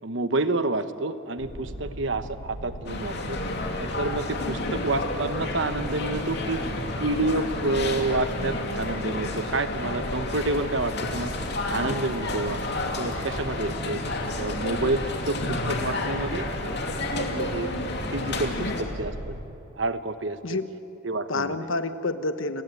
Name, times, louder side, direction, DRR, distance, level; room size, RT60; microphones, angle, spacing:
voice 1, 0.0-3.4 3.8-6.6 7.0-11.3 11.7-12.7 13.0-14.0 14.3-16.8 17.1-17.7 18.1-19.4 19.8-20.4 21.0-21.6, right 2 dB, 65° right, 11 dB, 1.1 m, -29 dB
sound 1, 1.4-19.4, equal, 80° right, 2.9 m, -38 dB
sound 2, 2.9-18.8, left 2 dB, 55° left, 2.7 m, -31 dB
voice 2, 18.6-19.0 20.4-20.7 21.3-22.6, left 2 dB, 75° left, 10 dB, 1.3 m, -29 dB
30.0 x 18.0 x 9.1 m, 3.0 s
head